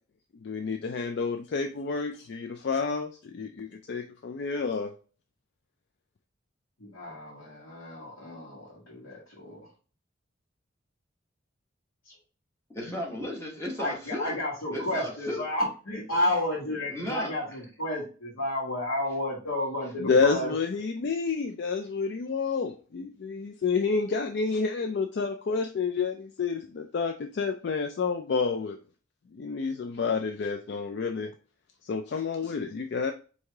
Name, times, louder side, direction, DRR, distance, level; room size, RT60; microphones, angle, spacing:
voice 1, 0.4-4.9 20.0-28.8 29.3-31.3 31.8-33.1, left 5 dB, 55° left, 0.3 m, -29 dB
voice 2, 6.8-9.6 12.0-12.1 13.8-20.5, left 1 dB, 85° left, 1.4 m, -31 dB
voice 3, 12.7-14.4 14.7-15.5 16.9-17.4, left 1 dB, 15° left, 1.0 m, -35 dB
4.7 x 2.7 x 3.4 m
head